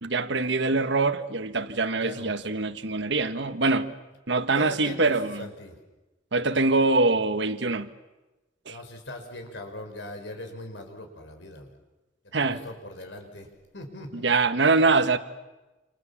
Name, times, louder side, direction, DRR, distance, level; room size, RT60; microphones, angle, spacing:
voice 1, 0.0-3.9 4.3-5.5 6.3-7.9 8.6-8.8 12.3-12.6 14.1-15.2, right 3 dB, 70° right, 1.6 m, -24 dB
voice 2, 2.0-2.4 4.5-5.8 8.7-11.7 12.2-13.5 13.7-14.3, left 1 dB, 70° left, 5.7 m, -40 dB
29.0 x 28.0 x 7.4 m
head